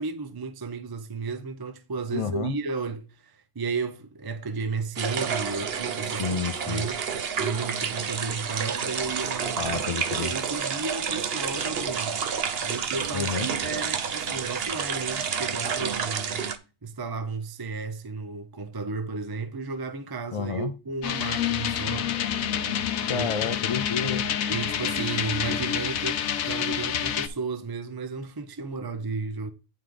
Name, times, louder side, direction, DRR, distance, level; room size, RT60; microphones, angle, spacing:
voice 1, 0.0-9.7 10.1-12.2 12.6-16.5 16.8-22.2 23.1-23.3 24.5-29.5, right 4 dB, 25° right, 0.6 m, -33 dB
voice 2, 2.1-2.5 6.2-6.8 9.6-10.3 13.1-13.5 20.3-20.7 23.1-24.3 25.5-25.6, left 6 dB, 55° left, 0.3 m, -30 dB
sound 1, 5.0-16.6, right 6 dB, 50° right, 0.9 m, -30 dB
sound 2, 21.0-27.3, left 9 dB, 85° left, 1.2 m, -28 dB
9.2 x 4.9 x 3.8 m
omnidirectional pair, 1.4 m